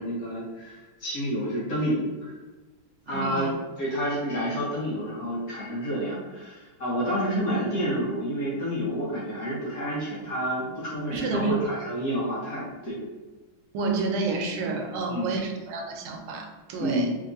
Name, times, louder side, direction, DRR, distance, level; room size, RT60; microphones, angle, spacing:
voice 1, 0.0-2.3 3.1-13.0 15.1-15.3 16.8-17.1, equal, 55° left, -7 dB, 1.1 m, -29 dB
voice 2, 3.1-3.5 11.1-11.8 13.7-17.1, right 4 dB, 90° right, 3 dB, 1.4 m, -29 dB
3.6 x 2.8 x 2.5 m, 1.2 s
omnidirectional pair, 2.2 m